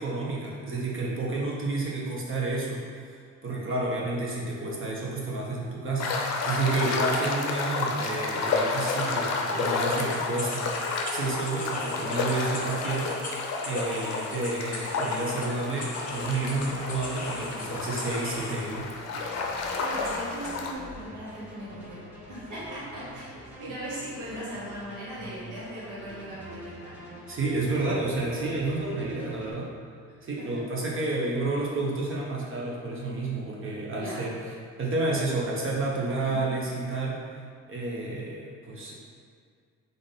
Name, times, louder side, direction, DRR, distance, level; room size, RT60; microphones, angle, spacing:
voice 1, 0.0-6.1 6.4-10.7 11.1-13.1 13.6-18.9 27.3-29.7 30.2-34.3 34.8-37.2 37.7-38.9, right 2 dB, 45° right, -4 dB, 0.7 m, -30 dB
sound 1, 6.0-20.7, left 4 dB, 60° left, 0.5 m, -31 dB
sound 2, 10.0-18.7, left 2 dB, 25° left, 0.8 m, -40 dB
sound 3, 15.8-29.5, right 1 dB, 5° right, 1.1 m, -46 dB
voice 2, 19.8-22.0 22.3-27.1 34.0-34.3 35.9-36.4, right 1 dB, 80° right, -8 dB, 1.4 m, -39 dB
3.6 x 2.5 x 3.8 m, 2.1 s
cardioid pair, 90°, 30 cm